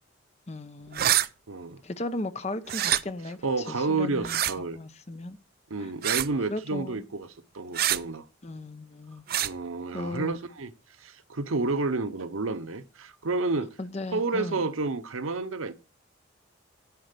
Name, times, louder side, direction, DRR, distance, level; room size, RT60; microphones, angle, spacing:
voice 1, 0.5-1.1 1.8-5.4 5.8-5.9 6.5-7.0 8.4-9.2 9.9-10.4 13.8-14.6, left 2 dB, 30° left, 0.7 m, -36 dB
sound 1, 0.9-1.3 2.7-3.0 4.2-4.5 6.0-6.3 7.7-8.0 9.3-9.5, right 12 dB, 45° right, 0.4 m, -25 dB
voice 2, 1.5-1.8 3.4-4.8 5.7-7.3 7.5-8.2 9.4-10.7 11.0-13.7 14.1-15.7, right 3 dB, 85° right, 0.8 m, -30 dB
10.5 x 4.4 x 6.7 m
head